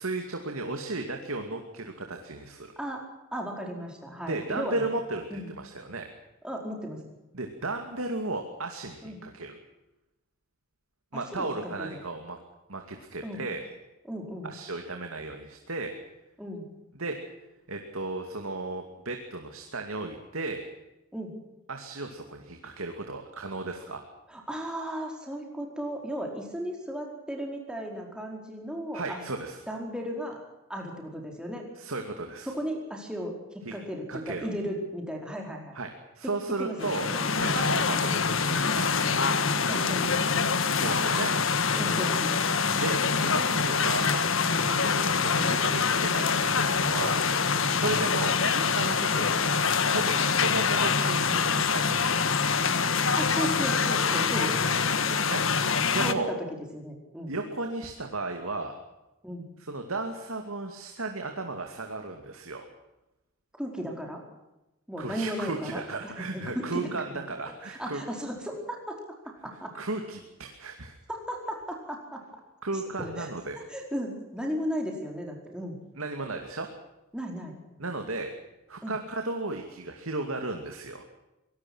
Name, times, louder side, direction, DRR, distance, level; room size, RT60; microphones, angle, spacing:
voice 1, 0.0-2.7 4.3-6.1 7.3-9.6 11.1-12.4 12.7-13.7 14.4-16.0 17.0-17.2 17.7-20.7 21.7-24.0 28.9-29.6 31.8-32.5 33.6-33.7 34.1-34.5 35.7-35.9 36.1-37.1 37.4-38.9 40.8-41.3 42.8-44.1 44.8-47.2 47.7-52.3 55.1-55.4 55.9-56.3 57.3-58.7 59.6-62.6 65.0-68.0 69.7-71.0 72.6-73.6 76.0-76.7 77.8-78.3 78.7-81.0, right 2 dB, 75° right, 4 dB, 2.5 m, -34 dB
voice 2, 3.3-4.8 5.3-5.5 6.4-7.0 9.0-9.2 11.1-12.0 13.2-13.4 14.1-14.5 16.4-16.6 21.1-21.3 24.3-29.2 29.7-30.4 30.7-31.6 32.5-35.8 36.6-37.2 39.7-40.2 41.8-42.5 44.7-44.8 53.1-54.7 56.0-56.4 56.7-57.3 59.2-59.4 63.6-64.2 64.9-67.2 67.7-68.9 69.4-69.7 71.3-72.2 73.0-73.3 73.7-75.8 77.1-77.6 78.8-78.9, equal, 5° right, 0 dB, 4.8 m, -35 dB
sound 1, 36.8-56.1, left 5 dB, 65° left, 1.6 m, -25 dB
24.0 x 19.0 x 6.3 m, 0.95 s
head